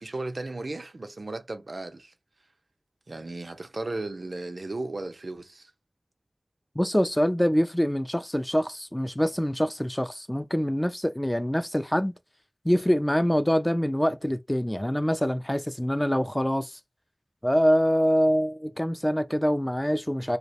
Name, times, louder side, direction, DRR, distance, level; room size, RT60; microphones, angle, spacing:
voice 1, 0.0-2.1 3.1-5.7, right 2 dB, 75° right, 0.4 m, -35 dB
voice 2, 6.8-12.1 12.6-16.8 17.4-20.4, equal, 15° left, 0.3 m, -25 dB
2.3 x 2.0 x 2.7 m
wide cardioid pair, 50°, 0 cm